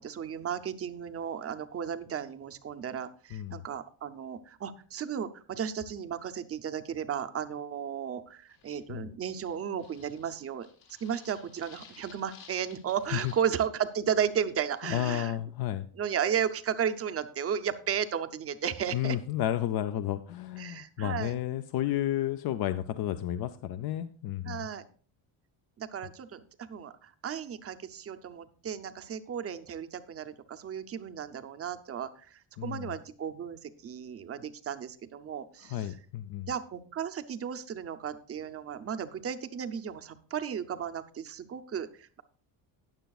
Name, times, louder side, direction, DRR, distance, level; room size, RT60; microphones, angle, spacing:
voice 1, 0.0-10.7 11.0-15.4 15.9-19.2 20.6-21.3 24.4-24.8 25.8-36.0 36.5-42.2, right 8 dB, 30° right, 9 dB, 0.5 m, -34 dB
voice 2, 3.3-3.6 8.9-9.1 13.1-13.3 14.9-15.9 18.9-24.7 32.6-32.9 35.7-36.5, left 12 dB, 50° left, 10 dB, 0.5 m, -32 dB
sound 1, 8.5-8.8 9.3-13.6 13.9-14.0 14.5-15.2, left 7 dB, 85° left, 4.2 m, -55 dB
19.5 x 6.8 x 2.3 m, 0.43 s
cardioid pair, 170°, 48 cm